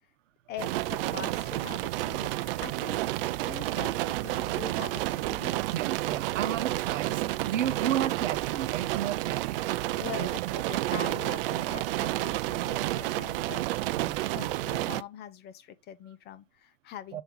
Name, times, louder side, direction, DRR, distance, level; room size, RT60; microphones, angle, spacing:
voice 1, 0.5-3.1 3.4-5.6 10.0-13.6 14.3-17.2, left 10 dB, 25° left, 0.5 m, -43 dB
sound 1, 0.6-15.0, right 17 dB, 45° right, 0.4 m, -30 dB
voice 2, 5.7-9.7 10.2-10.3 13.9-14.3 17.1-17.2, right 10 dB, 70° right, 0.9 m, -33 dB
7.1 x 3.4 x 5.4 m
figure-of-eight pair, 95°, 40 cm